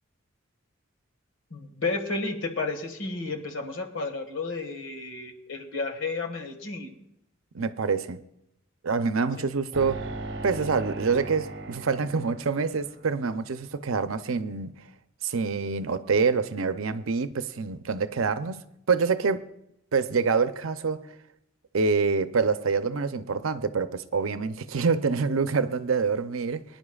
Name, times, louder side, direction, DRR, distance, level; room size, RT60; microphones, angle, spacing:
voice 1, 1.5-7.0, left 3 dB, 70° left, 1.7 m, -32 dB
voice 2, 7.5-8.2 8.8-10.1 10.4-14.8 15.2-19.5 19.9-21.1 21.7-26.6, right 5 dB, 85° right, 0.6 m, -26 dB
sound 1, 9.7-13.2, right 2 dB, 60° right, 1.1 m, -38 dB
23.0 x 10.5 x 2.4 m
head